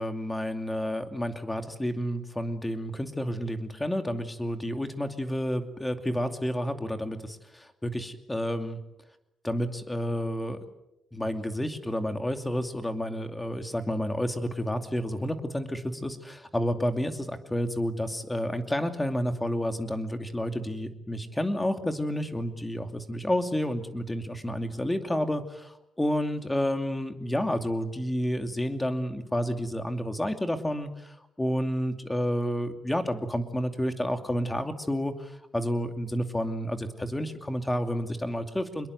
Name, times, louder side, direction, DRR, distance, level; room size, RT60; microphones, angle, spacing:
voice 1, 0.0-8.8 9.4-10.6 11.1-38.9, equal, 10° left, 7 dB, 2.6 m, -30 dB
26.0 x 22.0 x 8.0 m, 0.86 s
cardioid pair, 125°, 0 cm